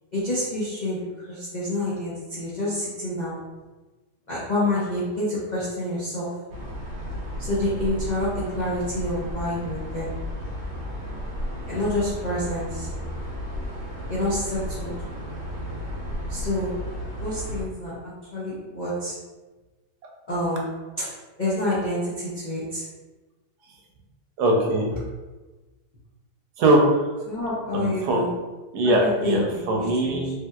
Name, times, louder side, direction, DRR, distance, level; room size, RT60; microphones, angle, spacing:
voice 1, 0.1-3.4 4.3-6.4 7.4-10.2 11.7-12.9 14.1-15.0 16.3-16.8 17.2-19.1 20.3-22.8 27.3-28.3 28.8-29.4 29.7-30.3, left 1 dB, 60° left, -9 dB, 0.4 m, -28 dB
sound 1, 6.5-17.6, equal, 60° right, 0.7 m, -33 dB
voice 2, 24.4-25.0 26.6-27.0 27.7-28.2 28.7-30.3, right 1 dB, 75° right, 0 dB, 1.1 m, -21 dB
3.2 x 2.7 x 2.3 m, 1.2 s
omnidirectional pair, 1.8 m